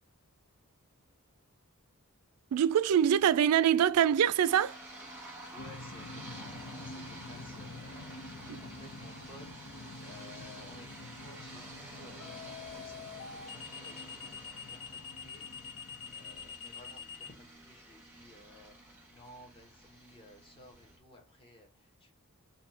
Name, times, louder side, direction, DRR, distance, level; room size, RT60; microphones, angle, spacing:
voice 1, 2.5-4.8 8.5-8.6, right 9 dB, 75° right, 0.3 m, -24 dB
sound 1, 4.4-21.0, right 1 dB, 10° right, 1.4 m, -50 dB
voice 2, 5.5-15.5 16.1-22.1, left 1 dB, 25° left, 1.3 m, -56 dB
sound 2, 5.6-16.5, left 2 dB, 90° left, 0.7 m, -49 dB
sound 3, 8.9-9.2 12.2-17.3, left 7 dB, 65° left, 1.0 m, -45 dB
3.5 x 2.6 x 4.1 m
head